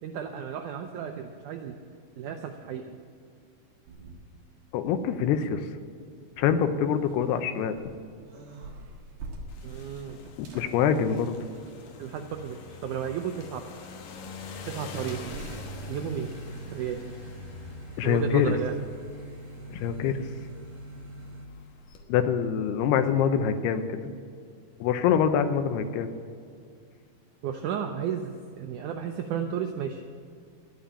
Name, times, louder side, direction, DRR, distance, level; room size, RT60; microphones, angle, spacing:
voice 1, 0.0-1.8 2.2-3.0 9.6-10.2 12.0-13.6 14.7-15.4 15.9-16.4 16.7-17.1 18.0-18.8 27.4-30.0, right 8 dB, 85° right, 5 dB, 1.7 m, -33 dB
sound 1, 3.9-4.6 4.9-21.5, right 2 dB, 60° right, 3.0 m, -46 dB
voice 2, 4.7-5.7 6.4-7.8 10.4-11.4 18.0-18.5 19.7-20.3 22.1-24.0 24.8-26.1, left 8 dB, 90° left, 9 dB, 2.9 m, -25 dB
sound 2, 9.5-22.0, left 3 dB, 65° left, 2.6 m, -45 dB
12.5 x 9.1 x 8.5 m, 2.3 s
omnidirectional pair, 4.5 m